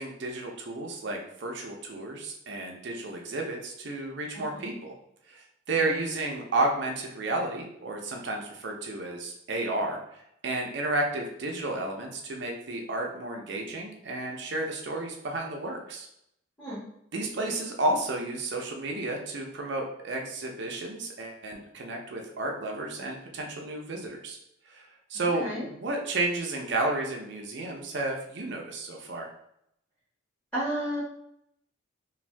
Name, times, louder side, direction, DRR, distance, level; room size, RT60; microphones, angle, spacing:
voice 1, 0.0-4.9 5.3-10.0 10.4-16.1 17.1-24.4 24.7-29.3, right 2 dB, 60° right, 1 dB, 0.5 m, -32 dB
voice 2, 4.3-4.8 5.8-6.1 16.6-16.9 25.1-25.6 30.5-31.0, right 1 dB, 5° left, -12 dB, 1.2 m, -34 dB
2.5 x 2.2 x 3.2 m, 0.75 s
head